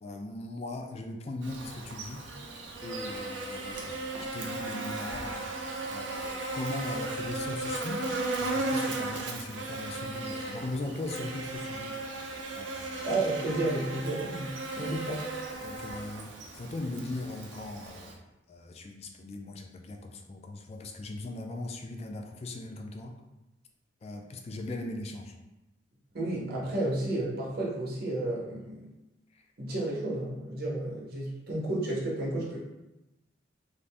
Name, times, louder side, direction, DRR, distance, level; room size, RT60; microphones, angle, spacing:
voice 1, 0.0-2.2 2.8-3.8 4.2-5.5 5.9-8.0 8.4-12.0 12.5-13.1 15.6-18.1 18.5-23.1 24.0-25.3 29.3-29.4, left 2 dB, 35° left, 3 dB, 0.3 m, -39 dB
Buzz, 1.4-18.1, right 2 dB, 80° right, 0.5 m, -36 dB
voice 2, 13.0-14.5 14.7-15.3 26.1-28.9 29.6-32.6, right 2 dB, 55° right, -4 dB, 0.9 m, -32 dB
2.5 x 2.5 x 3.3 m, 0.99 s
head